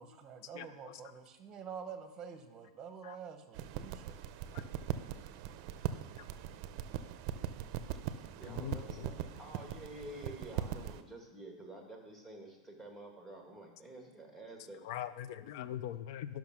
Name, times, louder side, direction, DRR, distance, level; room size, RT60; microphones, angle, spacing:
voice 1, 0.0-4.1, right 6 dB, 25° right, 8 dB, 1.1 m, -47 dB
voice 2, 0.5-1.0 3.0-3.2 4.5-4.6 6.2-6.3 8.4-9.4 10.3-10.7 14.8-16.4, left 11 dB, 55° left, 14 dB, 0.4 m, -43 dB
sound 1, 3.5-11.0, right 10 dB, 45° right, 0.6 m, -41 dB
voice 3, 8.4-14.8, right 1 dB, 5° left, 1 dB, 1.8 m, -49 dB
12.0 x 5.9 x 5.9 m, 1.1 s
supercardioid pair, 150°, 3 cm